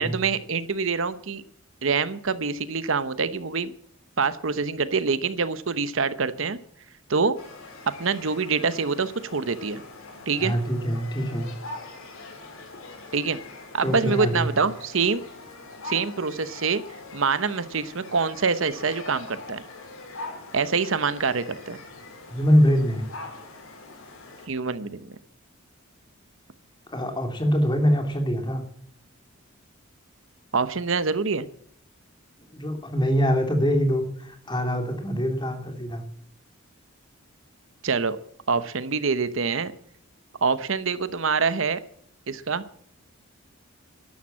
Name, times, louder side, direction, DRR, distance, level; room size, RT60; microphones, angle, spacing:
voice 1, 0.0-1.4 1.8-3.7 4.2-6.6 7.1-7.4 7.9-9.8 10.3-10.5 13.1-13.4 13.7-15.2 15.8-16.8 17.1-19.6 20.5-21.8 24.5-25.2 30.5-31.5 37.8-38.2 38.5-39.7 40.4-41.8 42.3-42.6, right 5 dB, 65° right, 14 dB, 0.9 m, -25 dB
sound 1, 7.4-24.5, left 3 dB, 80° left, 5.6 m, -42 dB
voice 2, 10.4-11.5 13.8-14.5 22.3-23.0 26.9-28.6 32.5-36.0, equal, 20° left, 5 dB, 3.0 m, -24 dB
12.5 x 11.5 x 7.4 m, 0.65 s
head